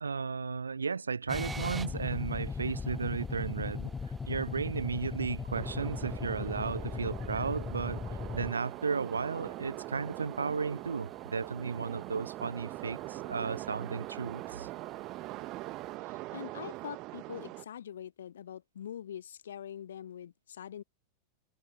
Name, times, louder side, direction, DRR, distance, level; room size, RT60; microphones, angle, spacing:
voice 1, 0.0-3.9 4.3-8.0 8.3-14.7, right 5 dB, 75° right, 0.5 m, -34 dB
sound 1, 1.3-8.5, left 5 dB, 15° left, 1.0 m, -38 dB
sound 2, 1.3-16.0, right 5 dB, 15° right, 1.2 m, -51 dB
sound 3, 5.5-17.7, right 21 dB, 40° right, 1.3 m, -43 dB
voice 2, 16.0-20.8, left 9 dB, 65° left, 1.0 m, -44 dB
figure-of-eight pair, 90°, 0 cm